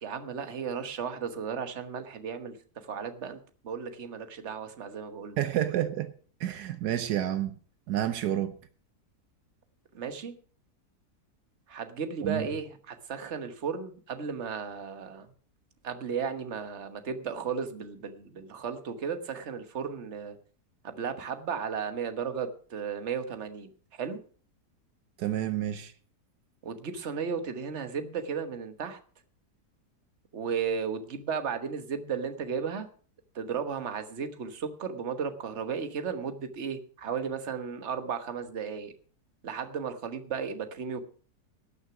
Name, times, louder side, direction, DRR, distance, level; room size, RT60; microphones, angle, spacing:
voice 1, 0.0-5.4 9.9-10.3 11.7-15.3 15.8-20.4 20.8-24.2 26.6-29.0 30.3-32.9 33.3-38.9 39.4-41.0, right 6 dB, 45° right, 1.5 m, -35 dB
voice 2, 5.4-6.1 6.4-7.6 7.9-8.6 12.2-12.5 25.2-25.9, right 11 dB, 80° right, 1.3 m, -29 dB
18.5 x 6.4 x 6.0 m
omnidirectional pair, 1.7 m